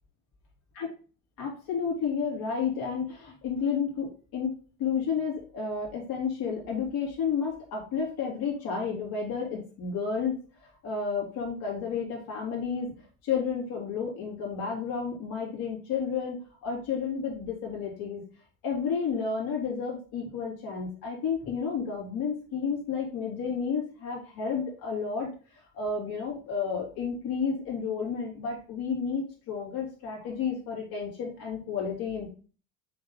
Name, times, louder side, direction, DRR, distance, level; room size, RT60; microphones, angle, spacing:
voice 1, 1.4-4.5 4.8-12.9 13.2-16.4 16.6-18.2 18.6-25.3 25.7-32.3, left 6 dB, 50° left, -3 dB, 3.0 m, -31 dB
7.7 x 3.7 x 3.8 m, 0.38 s
figure-of-eight pair, 75°, 45 cm